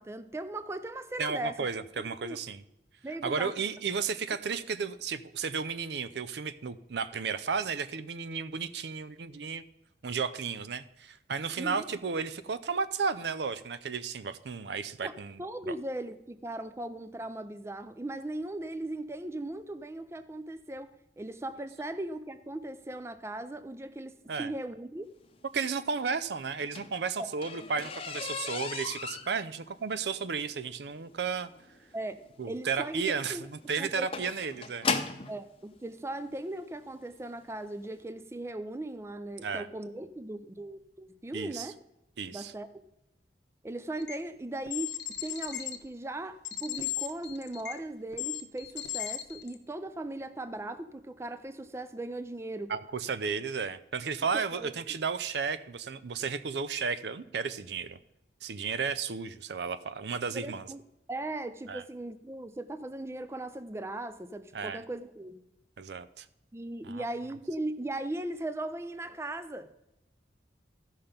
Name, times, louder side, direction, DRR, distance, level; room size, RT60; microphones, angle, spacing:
voice 1, 0.0-1.7 2.0-2.4 3.0-3.5 11.6-11.9 15.0-15.1 15.4-25.1 27.2-27.3 31.9-33.5 33.8-34.3 35.3-41.8 42.3-42.8 43.6-45.0 45.2-52.7 54.3-54.7 60.3-60.8 61.1-65.4 66.5-69.7, right 1 dB, 15° right, 0.4 m, -38 dB
voice 2, 1.2-2.6 3.2-9.6 10.0-15.7 24.3-24.5 25.5-31.5 32.4-34.9 39.4-39.7 41.3-41.7 42.2-42.5 52.7-58.0 58.4-60.7 61.7-61.8 64.5-64.8 65.8-66.3 66.8-67.1, right 5 dB, 70° right, 0.5 m, -33 dB
sound 1, 26.5-35.4 36.3-36.4 36.9-37.1 37.4-37.5 37.8-37.9, left 5 dB, 30° left, 0.7 m, -37 dB
sound 2, 44.0-44.2 44.7-45.8 46.4-47.8 48.1-49.5, left 12 dB, 80° left, 1.0 m, -36 dB
13.5 x 5.7 x 5.1 m
head